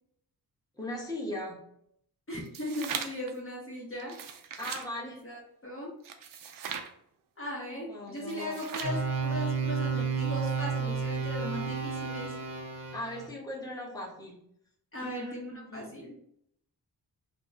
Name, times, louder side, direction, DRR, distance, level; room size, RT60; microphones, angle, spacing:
voice 1, 0.8-1.6 4.6-5.2 7.9-8.6 12.9-14.4 15.0-15.9, left 1 dB, 10° left, -3 dB, 1.0 m, -38 dB
voice 2, 2.3-4.2 5.2-5.9 7.4-12.4 14.9-16.2, left 1 dB, 35° left, -3 dB, 1.0 m, -38 dB
sound 1, 2.4-3.3 4.0-4.9 6.0-6.9 8.2-9.0, right 7 dB, 60° right, 0.5 m, -39 dB
sound 2, 8.8-13.3, right 5 dB, 90° right, 0.7 m, -31 dB
2.9 x 2.1 x 3.6 m, 0.70 s
cardioid pair, 75°, 39 cm